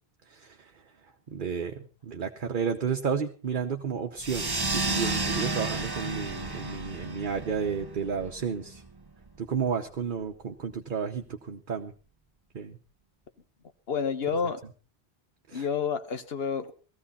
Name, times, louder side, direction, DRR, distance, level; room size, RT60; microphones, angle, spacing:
voice 1, 0.3-0.7 1.3-8.8 9.4-11.9 12.5-12.8 15.5-15.7, right 6 dB, 55° right, 1.0 m, -32 dB
sound 1, 4.2-9.3, right 3 dB, 25° right, 0.9 m, -32 dB
voice 2, 13.9-14.6 15.5-16.7, left 6 dB, 70° left, 1.4 m, -29 dB
18.0 x 14.5 x 4.2 m
omnidirectional pair, 1.1 m